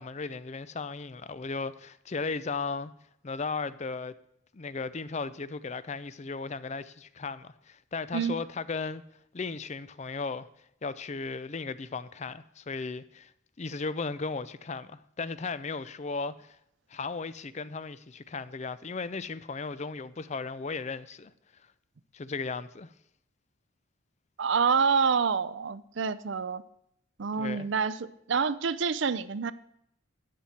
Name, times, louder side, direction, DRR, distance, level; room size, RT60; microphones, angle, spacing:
voice 1, 0.0-2.9 3.2-4.1 4.5-9.0 9.3-10.5 10.8-13.3 13.6-16.6 16.9-21.3 22.1-22.9 27.4-27.7, left 4 dB, 35° left, 0.4 m, -36 dB
voice 2, 24.4-26.6 27.2-29.5, right 5 dB, 60° right, 0.5 m, -27 dB
13.0 x 9.2 x 4.3 m
head